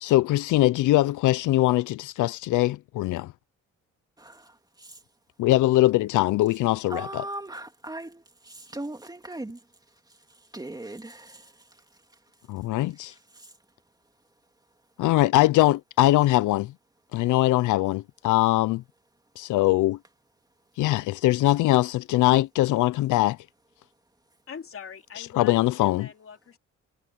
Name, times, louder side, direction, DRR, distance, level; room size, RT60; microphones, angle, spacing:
voice 1, 0.0-3.3 5.4-7.2 12.5-13.1 15.0-16.7 17.1-18.8 19.4-20.0 20.8-23.4 25.4-26.1, left 16 dB, 80° left, 0.6 m, -22 dB
voice 2, 4.2-5.0 6.9-9.6 10.1-11.8 13.0-13.5, right 1 dB, 15° right, 2.8 m, -39 dB
voice 3, 24.5-26.6, left 7 dB, 45° left, 2.7 m, -43 dB
cardioid pair, 90°, 30 cm